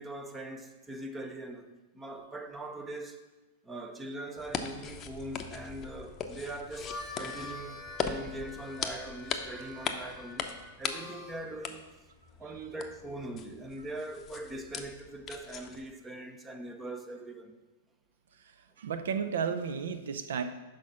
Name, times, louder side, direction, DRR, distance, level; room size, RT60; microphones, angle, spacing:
voice 1, 0.0-3.2 3.6-11.8 12.4-17.5, right 1 dB, 15° right, 0.7 m, -42 dB
sound 1, 4.4-15.9, left 7 dB, 30° left, 0.6 m, -40 dB
Harmonica, 6.7-11.5, left 2 dB, 5° left, 1.3 m, -45 dB
voice 2, 18.8-20.4, right 6 dB, 70° right, 0.7 m, -32 dB
6.2 x 5.0 x 5.6 m
hypercardioid pair, 105°, 0 cm